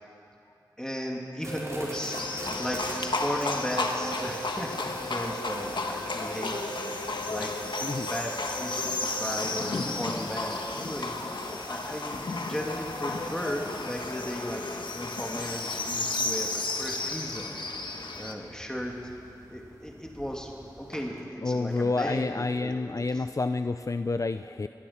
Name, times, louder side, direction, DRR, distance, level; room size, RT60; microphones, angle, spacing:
voice 1, 0.8-7.0 7.3-7.7 8.0-11.1 11.7-17.5 18.2-19.0 19.5-20.5 20.8-23.2, equal, 10° left, -1 dB, 2.6 m, -36 dB
sound 1, 1.4-10.4, right 2 dB, 65° left, 3.2 m, -41 dB
sound 2, 1.4-21.0, right 1 dB, 40° right, 5.2 m, -46 dB
Livestock farm animals working animals, 1.9-18.4, left 3 dB, 80° left, 1.6 m, -33 dB
voice 2, 21.4-24.7, left 3 dB, 45° left, 10 dB, 0.6 m, -29 dB
23.0 x 19.5 x 5.8 m, 2.7 s
wide cardioid pair, 50°, 8 cm